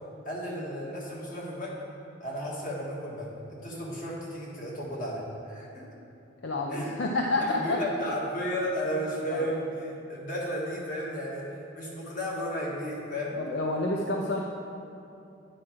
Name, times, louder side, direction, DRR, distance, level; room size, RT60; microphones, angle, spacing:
voice 1, 0.2-1.7 2.2-5.9 6.7-6.9 7.4-11.4 11.7-13.4, equal, 40° left, -4 dB, 1.6 m, -33 dB
voice 2, 6.4-7.8 9.3-9.5 13.4-14.4, left 2 dB, 60° left, 0 dB, 0.5 m, -29 dB
9.2 x 4.7 x 6.1 m, 2.7 s
head